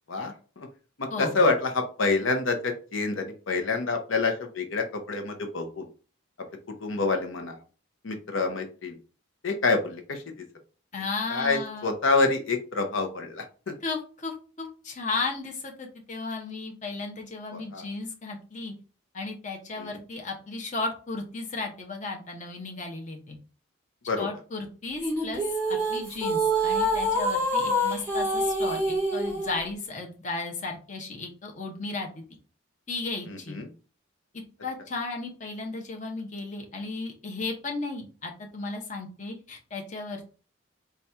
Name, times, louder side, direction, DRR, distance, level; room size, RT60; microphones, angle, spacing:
voice 1, 0.1-0.7 1.0-5.9 6.8-7.6 8.0-9.0 9.4-10.2 11.3-13.7 17.5-17.8 19.8-20.0 24.1-24.3 33.3-33.7, left 3 dB, 75° left, 5 dB, 0.7 m, -27 dB
voice 2, 10.9-11.9 13.8-18.7 19.1-23.4 24.2-25.4 25.7-32.2 32.9-33.6 34.6-40.2, left 3 dB, 35° left, 2 dB, 0.8 m, -34 dB
sound 1, 25.0-29.5, right 1 dB, 10° left, 1.5 m, -26 dB
4.1 x 2.3 x 4.3 m, 0.37 s
head